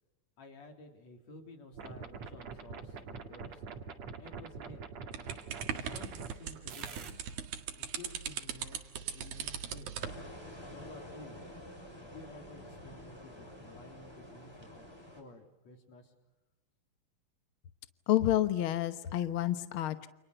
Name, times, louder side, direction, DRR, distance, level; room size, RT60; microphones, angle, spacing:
voice 1, 0.4-3.6 4.2-4.8 5.9-7.2 7.8-8.8 9.1-10.0 10.7-11.4 12.0-14.9 15.2-16.1, left 2 dB, 50° left, 4 dB, 4.6 m, -52 dB
sound 1, 1.7-6.3 6.7-7.1, right 5 dB, 50° right, 3.1 m, -45 dB
sound 2, 5.1-10.2, right 8 dB, 80° right, 3.6 m, -39 dB
sound 3, 10.0-15.2, left 1 dB, 5° left, 6.1 m, -49 dB
voice 2, 18.1-20.1, left 12 dB, 75° left, 11 dB, 1.2 m, -29 dB
29.5 x 28.0 x 6.8 m, 1.0 s
omnidirectional pair, 4.1 m